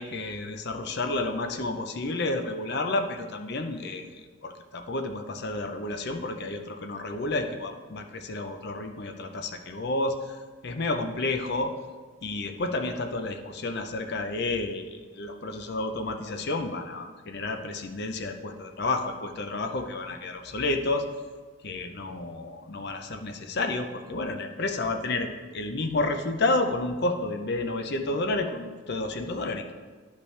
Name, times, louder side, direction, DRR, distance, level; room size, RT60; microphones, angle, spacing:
voice 1, 0.0-11.7 12.2-21.1 21.6-29.7, left 2 dB, 50° left, 6 dB, 0.6 m, -30 dB
10.5 x 5.4 x 3.2 m, 1.4 s
head